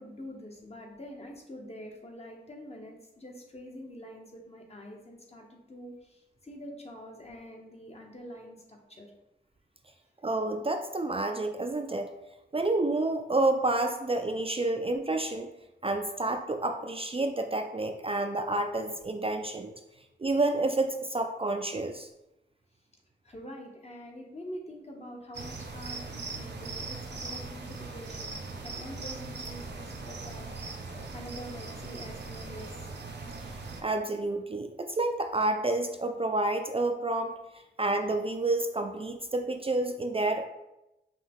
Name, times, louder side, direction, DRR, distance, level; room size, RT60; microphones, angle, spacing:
voice 1, 0.0-5.9 6.4-9.1 23.2-30.5 31.1-32.7, equal, 35° left, 0 dB, 1.0 m, -45 dB
voice 2, 10.2-12.1 12.5-15.5 15.8-19.7 20.2-22.1 33.8-37.3 37.8-40.5, right 2 dB, 30° right, 4 dB, 0.4 m, -29 dB
sound 1, 25.3-33.8, right 3 dB, 65° right, 0.7 m, -40 dB
5.4 x 2.3 x 3.5 m, 0.92 s
cardioid pair, 50°, 19 cm